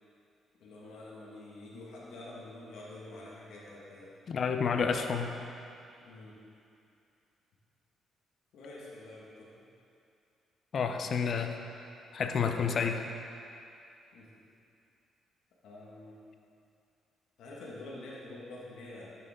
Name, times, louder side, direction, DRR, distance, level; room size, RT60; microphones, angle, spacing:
voice 1, 0.6-4.1 6.0-6.4 8.5-9.6 14.1-14.3 15.6-16.2 17.4-19.2, left 2 dB, 80° left, -5 dB, 1.8 m, -47 dB
voice 2, 4.3-5.4 10.7-11.5 12.1-13.1, left 6 dB, 55° left, 5 dB, 0.7 m, -30 dB
12.5 x 6.9 x 3.8 m, 2.6 s
cardioid pair, 90°, 0 cm